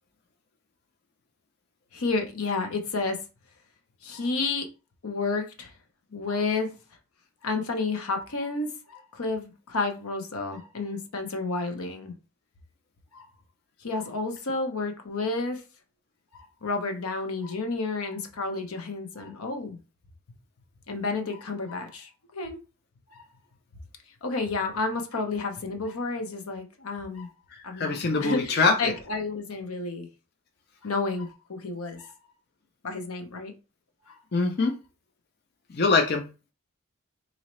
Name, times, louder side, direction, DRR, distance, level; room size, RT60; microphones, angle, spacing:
voice 1, 1.9-3.2 4.0-4.7 5.0-5.7 6.1-6.7 7.4-12.1 13.1-13.3 13.8-15.6 16.3-19.8 20.9-22.6 23.1-23.2 24.2-27.3 27.6-30.1 30.8-32.1 32.8-33.5 34.1-34.2, left 3 dB, 90° left, 0.8 m, -31 dB
voice 2, 27.5-28.9 34.3-34.7 35.7-36.3, left 4 dB, 45° left, 0.5 m, -24 dB
4.0 x 2.8 x 3.1 m
head